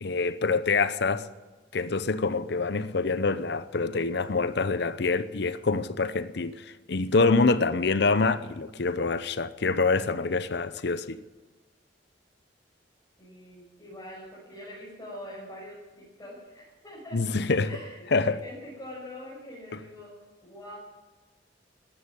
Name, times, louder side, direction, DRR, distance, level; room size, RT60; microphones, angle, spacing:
voice 1, 0.0-1.3 1.7-11.2 17.1-17.7 18.1-18.4, left 3 dB, 65° left, 0.7 m, -26 dB
voice 2, 13.2-17.3 17.6-20.8, left 1 dB, 20° left, 5.8 m, -44 dB
14.5 x 11.0 x 9.2 m
head